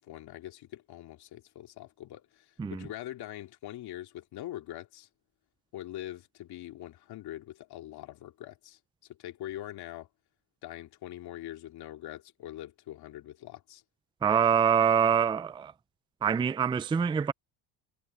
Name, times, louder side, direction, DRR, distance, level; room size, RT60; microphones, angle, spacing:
voice 1, 0.0-5.1 5.7-8.8 9.1-10.1 10.6-13.8, left 13 dB, 60° left, 2.7 m, -43 dB
voice 2, 14.2-15.7 16.2-17.3, right 7 dB, 10° right, 0.4 m, -25 dB
cardioid pair, 110°, 44 cm